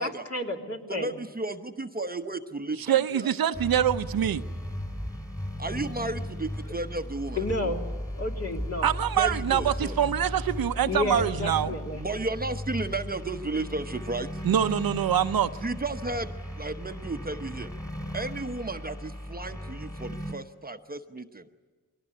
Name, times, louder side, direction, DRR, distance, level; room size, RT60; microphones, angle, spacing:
voice 1, 0.0-1.1 7.4-7.8 8.2-8.9 10.9-12.1, left 2 dB, 45° left, 2 dB, 2.9 m, -31 dB
voice 2, 0.9-3.3 5.6-7.4 9.2-9.9 11.9-14.4 15.6-17.7 18.1-21.4, right 2 dB, 25° right, 8 dB, 0.9 m, -33 dB
voice 3, 2.9-4.4 8.8-11.7 14.4-15.5, right 9 dB, 75° right, 11 dB, 0.8 m, -25 dB
sound 1, 3.5-20.3, equal, 10° left, 3.0 m, -36 dB
22.5 x 18.0 x 9.7 m, 1.4 s
cardioid pair, 70°, 35 cm